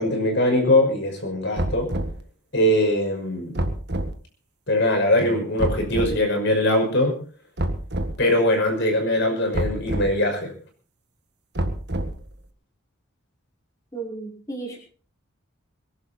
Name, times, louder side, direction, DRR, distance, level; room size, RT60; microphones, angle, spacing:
voice 1, 0.0-1.9 2.5-3.6 4.7-7.2 8.2-10.5, left 1 dB, 55° left, 2 dB, 5.8 m, -21 dB
sound 1, 1.6-2.2 3.6-4.1 5.6-6.2 7.6-8.2 9.5-10.1 11.6-12.3, right 1 dB, 50° right, 1.7 m, -27 dB
voice 2, 13.9-14.8, right 3 dB, 15° left, -3 dB, 5.3 m, -34 dB
23.5 x 11.5 x 4.3 m, 0.40 s
head